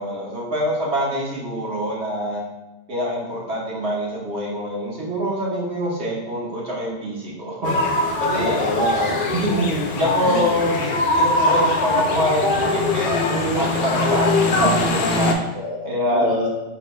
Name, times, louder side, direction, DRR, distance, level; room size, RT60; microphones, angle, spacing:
voice 1, 0.0-2.4 2.9-7.7 8.2-8.7 9.9-15.4 15.8-16.3, equal, 70° right, -5 dB, 1.4 m, -25 dB
sound 1, 7.6-15.3, left 2 dB, 55° left, 0.6 m, -21 dB
voice 2, 8.3-9.9 10.2-10.5 13.3-13.6 14.1-14.2 15.5-16.5, right 1 dB, 45° right, -1 dB, 0.7 m, -25 dB
5.0 x 4.1 x 2.2 m, 1.0 s
omnidirectional pair, 1.2 m